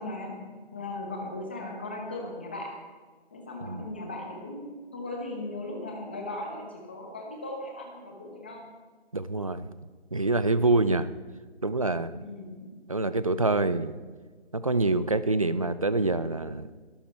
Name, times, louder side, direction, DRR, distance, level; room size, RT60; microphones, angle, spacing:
voice 1, 0.0-2.7 3.3-8.7 12.1-12.7, left 2 dB, 10° left, 1 dB, 1.0 m, -38 dB
voice 2, 9.1-9.7 10.1-11.1 11.6-12.2 12.9-13.9 14.5-16.7, right 2 dB, 35° right, 14 dB, 0.6 m, -26 dB
22.0 x 13.0 x 4.4 m, 1.4 s
hypercardioid pair, 175°, 32 cm